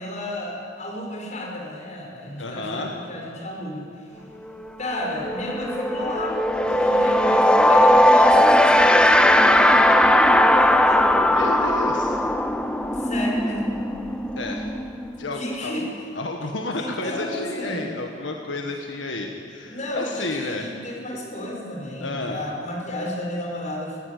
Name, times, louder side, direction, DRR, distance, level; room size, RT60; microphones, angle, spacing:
voice 1, 0.0-3.9 4.8-11.1 12.9-13.8 15.3-15.9 16.8-17.9 19.6-24.1, left 1 dB, 40° left, -1 dB, 5.1 m, -32 dB
voice 2, 2.4-2.9 11.3-12.2 14.4-14.7 15.2-15.8 16.1-20.7 22.0-22.4, left 2 dB, 85° left, 2 dB, 1.7 m, -31 dB
sound 1, 4.5-4.6 4.9-15.5, left 1 dB, 5° left, 0.8 m, -18 dB
17.0 x 15.5 x 9.7 m, 2.7 s
head